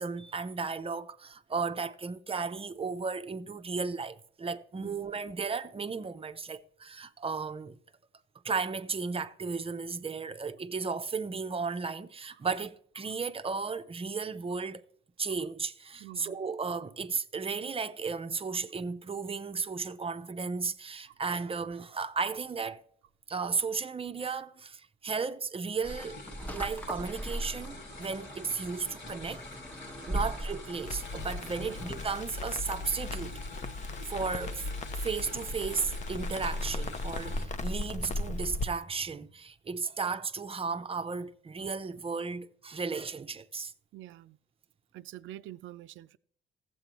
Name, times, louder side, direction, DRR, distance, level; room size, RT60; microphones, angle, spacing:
voice 1, 0.0-7.8 8.4-14.8 15.2-22.8 23.3-26.2 26.5-29.4 30.1-33.4 34.1-34.7 35.0-43.7, right 5 dB, 30° right, 0.6 m, -34 dB
voice 2, 16.0-16.4 21.1-21.2 30.1-30.3 31.6-31.8 43.9-44.4 44.9-46.2, right 14 dB, 80° right, 0.5 m, -47 dB
sound 1, 25.8-37.5, left 2 dB, 65° left, 2.2 m, -47 dB
sound 2, 25.8-32.2, right 1 dB, 5° left, 0.9 m, -40 dB
Crackle, 30.8-38.7, left 2 dB, 35° left, 0.6 m, -37 dB
15.0 x 7.7 x 3.0 m
cardioid pair, 90°, 20 cm